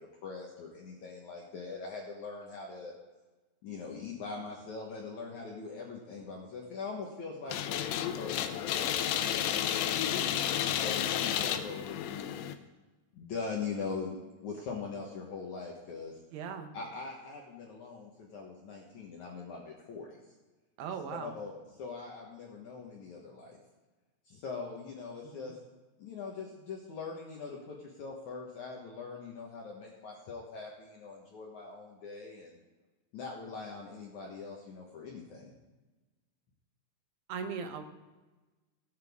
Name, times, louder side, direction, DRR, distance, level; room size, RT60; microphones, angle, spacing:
voice 1, 0.0-2.9 3.6-10.2 10.8-12.4 13.1-14.1 14.4-16.2 16.7-20.2 21.2-21.5 21.8-23.6 24.3-25.6 26.0-32.6 33.1-35.5, left 4 dB, 65° left, -2 dB, 2.0 m, -42 dB
sound 1, 7.5-12.5, left 10 dB, 85° left, 3.0 m, -31 dB
voice 2, 16.3-16.7 20.8-21.3 25.2-25.5 37.3-37.8, right 6 dB, 75° right, 6 dB, 3.0 m, -39 dB
17.5 x 9.1 x 3.6 m, 1.2 s
omnidirectional pair, 5.0 m